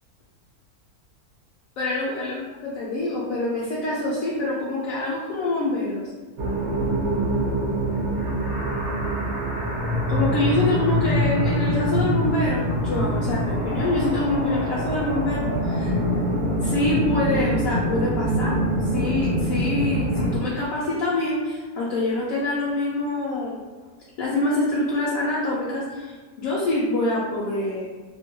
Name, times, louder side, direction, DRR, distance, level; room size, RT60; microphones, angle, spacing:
voice 1, 1.8-6.0 10.1-15.9 16.6-23.6 24.2-27.9, left 2 dB, 70° left, -6 dB, 0.9 m, -25 dB
sound 1, 6.4-20.4, equal, 60° right, 0.9 m, -24 dB
2.7 x 2.2 x 2.9 m, 1.4 s
omnidirectional pair, 1.6 m